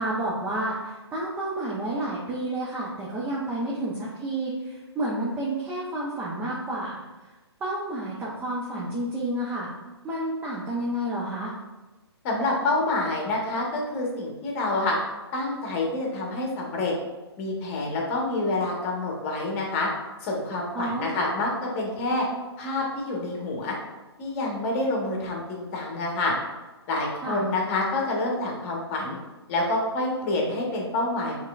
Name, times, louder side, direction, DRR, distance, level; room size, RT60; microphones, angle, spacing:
voice 1, 0.0-7.0 7.6-9.7 10.0-11.5 20.7-21.1 27.2-27.4, right 1 dB, 10° right, -6 dB, 0.6 m, -30 dB
voice 2, 12.2-15.0 15.3-16.9 17.4-19.9 20.2-22.2 22.6-23.7 24.2-26.3 26.9-29.2 29.5-31.3, left 2 dB, 30° left, -1 dB, 1.2 m, -27 dB
6.3 x 3.3 x 2.4 m, 1.2 s
figure-of-eight pair, 135°, 14 cm